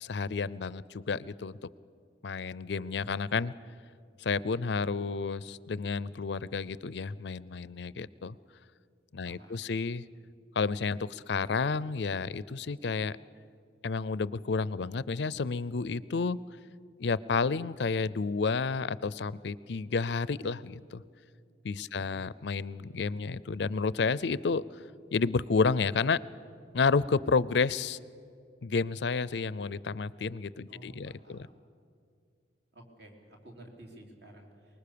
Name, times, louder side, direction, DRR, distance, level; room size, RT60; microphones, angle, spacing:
voice 1, 0.0-1.6 2.2-3.5 4.2-8.4 9.1-10.0 10.6-13.2 13.8-16.4 17.0-21.0 21.6-24.8 25.1-26.2 26.7-28.0 28.6-31.5, left 4 dB, 65° left, 19 dB, 0.5 m, -30 dB
voice 2, 9.2-9.6 21.9-22.3 30.7-31.5 32.7-34.8, right 1 dB, 60° right, 2 dB, 3.7 m, -52 dB
24.5 x 21.0 x 6.9 m, 2.3 s
head